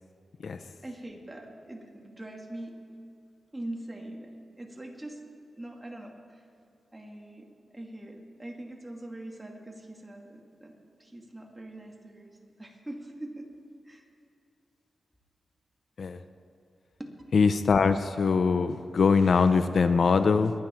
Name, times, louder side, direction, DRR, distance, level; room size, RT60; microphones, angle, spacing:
voice 1, 0.8-2.8 3.5-5.2 5.6-6.4 6.9-13.5 13.8-14.1 17.0-17.1, right 1 dB, 15° right, 1 dB, 2.4 m, -43 dB
voice 2, 17.3-20.5, left 5 dB, 65° left, 11 dB, 0.6 m, -22 dB
23.0 x 9.4 x 4.5 m, 2.7 s
cardioid pair, 80°, 0 cm